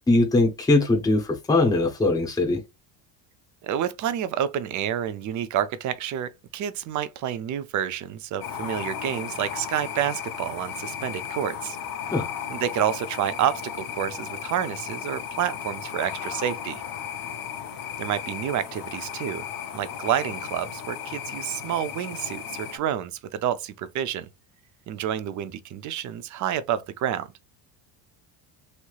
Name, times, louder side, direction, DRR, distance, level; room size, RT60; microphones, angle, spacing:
voice 1, 0.1-2.6 12.1-12.3, left 2 dB, 10° left, 0.7 m, -21 dB
voice 2, 3.6-11.8 12.5-16.8 18.0-19.4 19.7-24.3 24.9-27.3, right 10 dB, 45° right, 0.4 m, -29 dB
sound 1, 8.4-22.8, left 8 dB, 50° left, 0.6 m, -35 dB
3.2 x 2.7 x 2.3 m
cardioid pair, 130°, 45 cm